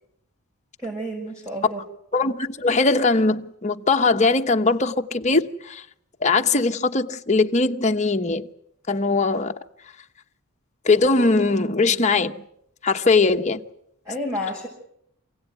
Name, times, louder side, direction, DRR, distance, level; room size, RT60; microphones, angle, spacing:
voice 1, 0.8-1.8 14.0-14.7, equal, 15° right, 5.7 m, -30 dB
voice 2, 2.1-5.8 6.2-8.5 8.9-9.5 10.8-12.4 12.8-13.6, left 3 dB, 30° left, 1.1 m, -20 dB
27.5 x 17.5 x 9.3 m
head